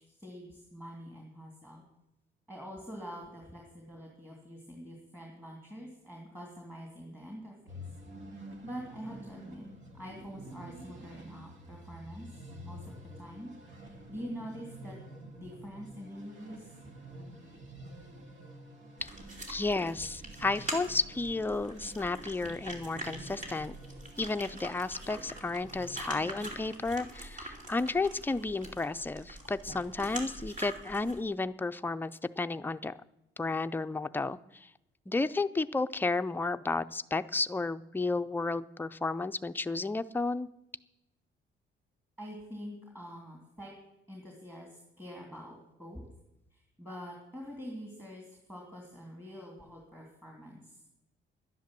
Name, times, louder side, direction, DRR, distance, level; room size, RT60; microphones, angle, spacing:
voice 1, 0.0-1.8 2.5-7.7 8.6-9.7 9.9-12.9 13.2-13.5 13.8-15.0 15.4-16.7 42.2-43.7 44.1-46.0 46.5-50.8, equal, 10° right, -1 dB, 2.8 m, -45 dB
sound 1, 7.7-26.5, right 1 dB, 75° right, 2.1 m, -49 dB
sound 2, 19.0-31.2, right 1 dB, 40° right, 3.0 m, -44 dB
voice 2, 19.5-23.7 24.2-32.9 33.4-34.4 35.1-40.5, left 3 dB, 10° left, 10 dB, 0.4 m, -32 dB
11.5 x 10.5 x 7.4 m, 0.91 s
cardioid pair, 125°, 20 cm